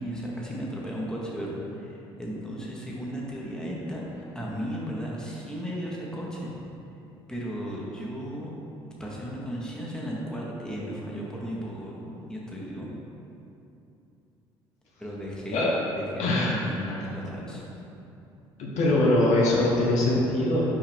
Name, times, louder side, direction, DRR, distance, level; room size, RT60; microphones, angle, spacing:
voice 1, 0.0-4.1 4.3-6.5 7.3-8.5 8.8-12.9 15.0-15.7 16.0-17.6, equal, 5° left, -4 dB, 1.2 m, -35 dB
voice 2, 16.2-17.3 18.6-20.6, left 1 dB, 60° left, -4 dB, 1.1 m, -23 dB
5.6 x 4.8 x 3.5 m, 2.7 s
hypercardioid pair, 55°, 13 cm